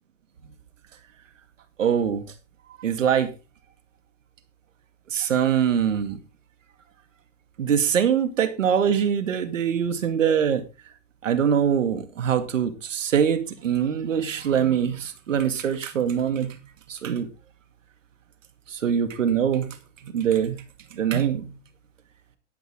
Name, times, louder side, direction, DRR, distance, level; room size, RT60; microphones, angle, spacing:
voice 1, 1.8-2.3 2.8-3.3 5.1-6.2 7.6-10.6 11.2-16.6 16.9-17.3 18.7-19.7 20.1-20.6 20.9-21.6, right 8 dB, 80° right, 9 dB, 2.3 m, -23 dB
12.0 x 11.5 x 3.6 m, 0.28 s
hypercardioid pair, 110°, 38 cm